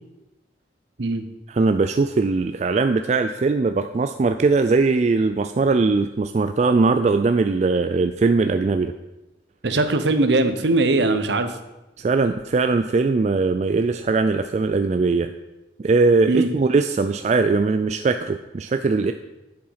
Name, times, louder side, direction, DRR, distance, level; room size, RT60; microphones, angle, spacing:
voice 1, 1.5-8.9 12.0-15.3 15.8-19.1, right 3 dB, 40° right, 8 dB, 0.3 m, -20 dB
voice 2, 9.6-11.5 16.3-16.5, right 2 dB, 70° right, 9 dB, 0.8 m, -20 dB
7.7 x 7.1 x 5.6 m, 1.0 s
head